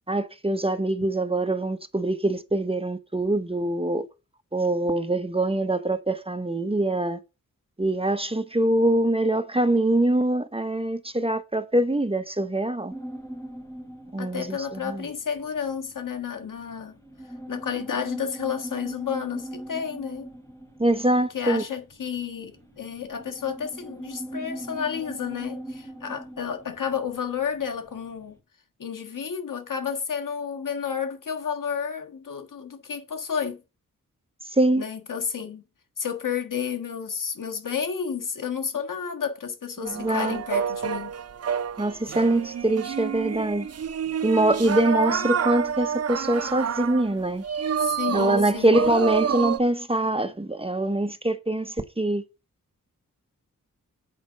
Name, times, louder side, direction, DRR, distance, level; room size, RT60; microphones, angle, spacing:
voice 1, 0.1-4.1 4.5-7.2 7.8-12.9 14.1-15.1 20.8-21.6 34.5-34.8 39.8-40.4 41.8-43.7 44.2-47.4 48.1-52.2, right 1 dB, 15° right, 0.9 m, -24 dB
sound 1, 12.9-28.4, right 1 dB, 10° left, 2.8 m, -41 dB
voice 2, 14.2-17.0 17.5-20.3 21.3-28.3 28.8-33.6 34.8-35.6 36.0-41.1 45.0-45.3 47.8-48.9, left 7 dB, 75° left, 1.6 m, -31 dB
sound 2, 39.8-49.6, right 7 dB, 50° right, 0.6 m, -28 dB
8.3 x 5.1 x 6.6 m
wide cardioid pair, 80°, 32 cm